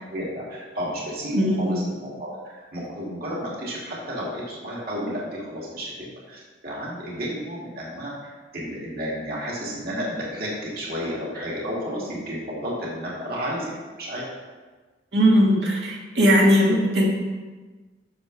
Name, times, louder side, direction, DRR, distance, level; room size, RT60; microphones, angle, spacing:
voice 1, 0.1-13.7 14.0-14.3, equal, 60° right, -5 dB, 2.5 m, -32 dB
voice 2, 1.3-1.8 15.1-17.1, equal, 85° right, -2 dB, 1.9 m, -19 dB
11.5 x 6.4 x 3.3 m, 1.3 s
head